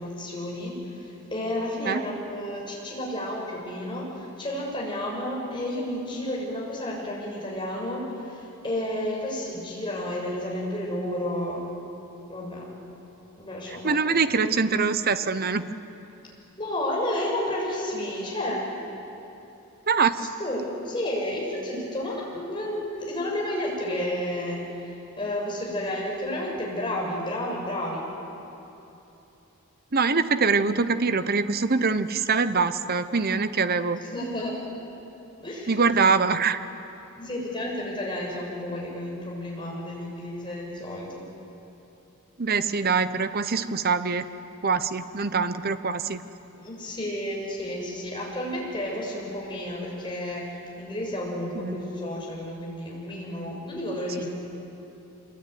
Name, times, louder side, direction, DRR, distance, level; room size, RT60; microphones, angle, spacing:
voice 1, 0.0-11.6 12.3-12.6 13.4-14.0 16.6-18.7 20.2-28.1 34.0-34.6 35.4-36.1 37.1-41.2 46.6-54.3, left 1 dB, 20° left, -3 dB, 6.8 m, -31 dB
voice 2, 13.7-15.7 19.9-20.3 29.9-34.0 35.7-36.6 42.4-44.2 44.6-46.3 51.5-51.9 54.2-54.3, right 4 dB, 45° right, 11 dB, 0.9 m, -24 dB
25.5 x 22.5 x 9.4 m, 3.0 s
head